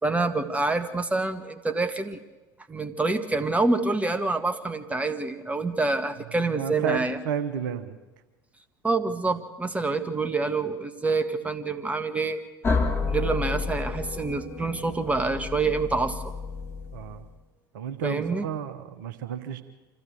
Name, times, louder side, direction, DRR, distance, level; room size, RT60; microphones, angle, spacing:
voice 1, 0.0-2.2 2.7-7.2 8.8-12.4 13.1-16.3 18.0-18.5, right 3 dB, 10° right, 8 dB, 1.7 m, -27 dB
voice 2, 6.5-8.0 16.9-17.2 17.7-19.6, right 8 dB, 70° right, 10 dB, 1.3 m, -32 dB
sound 1, 12.6-17.3, left 4 dB, 20° left, 2.9 m, -30 dB
25.5 x 15.0 x 7.9 m, 1.2 s
figure-of-eight pair, 70°, 11 cm